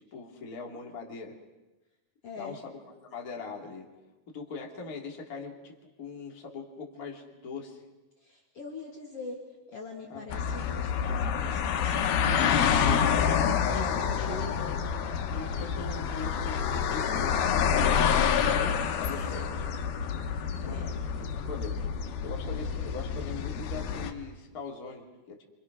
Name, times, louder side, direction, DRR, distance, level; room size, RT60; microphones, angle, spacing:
voice 1, 0.1-1.4 2.4-3.8 4.3-7.9 10.1-10.2 13.6-14.4 15.3-18.1 18.4-19.7 20.5-21.8 22.2-25.4, left 4 dB, 25° left, 0 dB, 3.1 m, -41 dB
voice 2, 2.2-2.6 8.2-9.4 9.7-14.8 20.6-21.0, left 4 dB, 40° left, 0 dB, 3.2 m, -42 dB
sound 1, 10.3-24.1, left 7 dB, 85° left, 3.3 m, -28 dB
27.5 x 26.0 x 6.2 m, 1.1 s
omnidirectional pair, 4.3 m